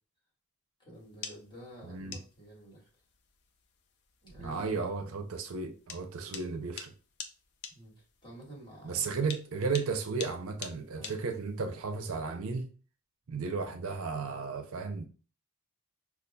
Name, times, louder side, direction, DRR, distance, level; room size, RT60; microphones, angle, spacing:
voice 1, 0.8-2.9 4.2-4.7 6.2-6.3 7.7-9.2 10.9-11.1, right 1 dB, 20° left, 1.6 m, -50 dB
sound 1, 1.0-11.7, left 6 dB, 50° left, 0.5 m, -47 dB
voice 2, 1.9-2.2 4.4-6.9 8.8-12.7 13.3-15.0, right 4 dB, 65° right, 0.5 m, -34 dB
5.2 x 2.3 x 2.2 m
head